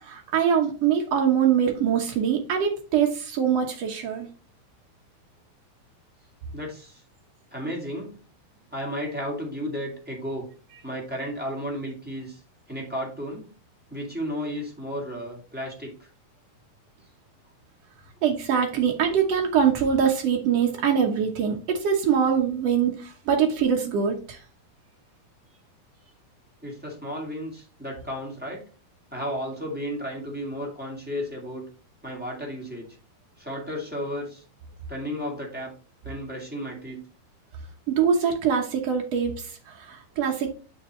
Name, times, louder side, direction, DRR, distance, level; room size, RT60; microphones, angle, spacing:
voice 1, 0.0-4.3 18.2-24.4 37.9-40.5, right 7 dB, 85° right, 2 dB, 1.4 m, -23 dB
voice 2, 6.5-7.0 7.5-8.2 8.7-10.5 10.8-12.4 12.7-13.5 13.9-16.1 26.6-28.6 29.1-31.6 32.0-32.9 33.4-34.4 34.9-35.7 36.0-37.0, equal, 5° right, -2 dB, 1.3 m, -33 dB
7.8 x 5.7 x 3.1 m, 0.37 s
omnidirectional pair, 4.4 m